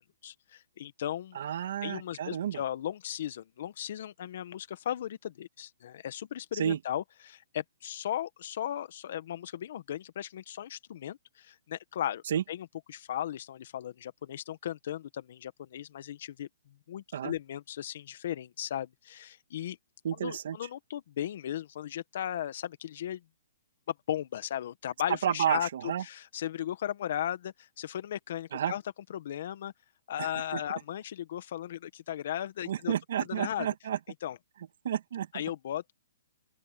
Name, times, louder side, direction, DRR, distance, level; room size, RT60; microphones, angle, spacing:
voice 1, 0.2-1.4 1.8-16.5 16.9-19.8 20.2-23.2 24.1-28.8 29.1-29.7 30.1-32.9 33.2-33.7 34.2-34.4 35.3-35.9, left 11 dB, 55° left, 1.3 m, -36 dB
voice 2, 1.4-2.6 6.6-6.8 12.3-12.4 17.1-17.3 20.0-20.6 25.2-25.6 25.9-26.0 28.5-28.7 30.2-30.3 30.5-30.6 32.7-34.0 34.8-35.3, right 9 dB, 60° right, 2.0 m, -30 dB
open air
hypercardioid pair, 155°, 0 cm